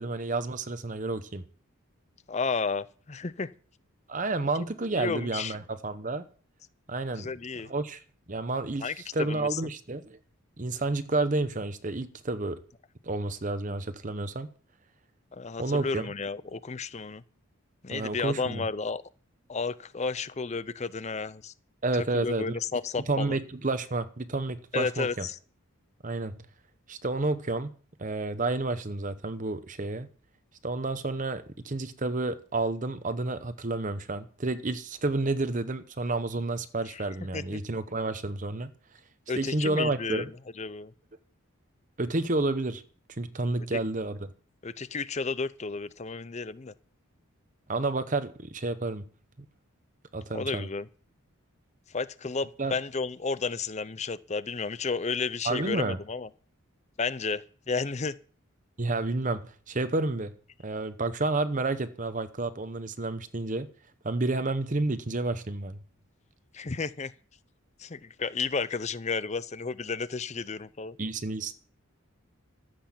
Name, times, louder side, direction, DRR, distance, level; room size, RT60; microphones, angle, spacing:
voice 1, 0.0-1.4 4.1-6.2 6.9-7.3 7.7-8.0 8.3-10.2 10.6-12.6 13.0-14.5 15.6-16.0 17.9-18.6 21.8-22.6 23.1-25.3 26.0-26.4 26.9-27.7 28.0-30.1 30.6-38.7 39.4-40.3 42.0-42.8 43.1-44.2 47.7-49.0 50.1-50.7 52.6-52.7 55.4-56.0 58.8-59.4 59.7-60.3 60.6-63.7 64.0-65.8 71.0-71.5, right 2 dB, 35° right, 0.8 m, -30 dB
voice 2, 2.3-3.5 5.0-5.6 7.2-7.7 8.8-9.6 15.3-17.2 17.8-19.0 19.5-21.5 22.1-23.4 24.7-25.4 36.9-37.0 37.3-37.6 39.3-40.3 40.6-40.9 43.7-43.8 44.6-46.7 50.3-50.9 51.9-56.3 57.0-58.1 66.5-67.1 67.8-71.0, left 4 dB, 30° left, 0.5 m, -32 dB
14.5 x 7.9 x 7.4 m
head